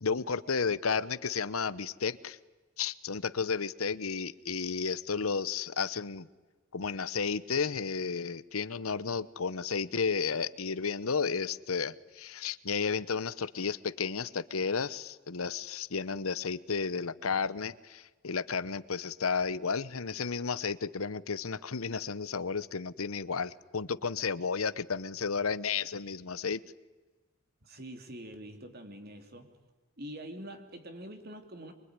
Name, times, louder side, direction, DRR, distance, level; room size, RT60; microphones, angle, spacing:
voice 1, 0.0-2.4 2.8-6.3 6.7-26.6, left 5 dB, 90° left, 16 dB, 1.0 m, -32 dB
voice 2, 27.6-29.5 30.0-31.7, right 1 dB, 45° right, 6 dB, 3.1 m, -45 dB
24.5 x 23.5 x 9.8 m, 1.2 s
head